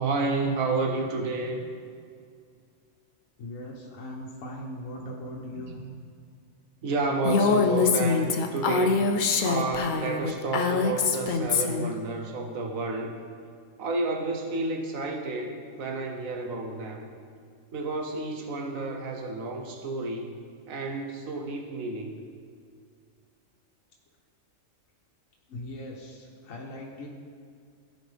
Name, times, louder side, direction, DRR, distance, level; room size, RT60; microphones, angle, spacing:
voice 1, 0.0-1.6 5.0-5.1 5.7-6.0 6.8-9.0 9.4-13.1 13.8-17.1 17.7-20.3 20.7-22.2, right 3 dB, 90° right, 2 dB, 1.4 m, -30 dB
voice 2, 3.4-5.8 25.5-27.1, left 1 dB, 80° left, -2 dB, 1.3 m, -39 dB
Female speech woman speaking, 7.2-11.9, left 5 dB, 60° left, 0.5 m, -24 dB
14.5 x 5.2 x 3.4 m, 2.2 s
omnidirectional pair, 1.4 m